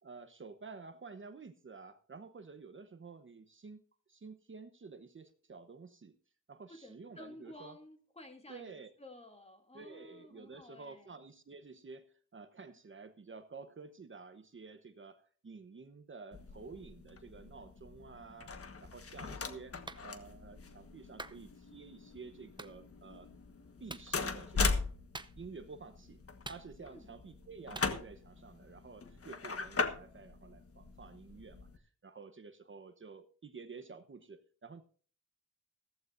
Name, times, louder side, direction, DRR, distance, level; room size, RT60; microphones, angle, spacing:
voice 1, 0.0-6.2 6.5-7.8 8.5-8.9 9.7-23.3 23.8-24.9 25.4-34.8, right 4 dB, 40° right, 9 dB, 1.0 m, -51 dB
voice 2, 6.7-11.1 26.8-27.1, left 1 dB, 20° left, 5 dB, 2.5 m, -54 dB
sound 1, 16.3-31.8, left 4 dB, 45° left, 1.5 m, -40 dB
Clapping, 19.9-20.0 21.2-21.4 22.6-22.7 23.9-24.1 25.1-25.6 26.4-27.0 27.8-27.9, right 2 dB, 15° right, 0.7 m, -46 dB
15.5 x 14.5 x 2.6 m, 0.42 s
wide cardioid pair, 135°, 31 cm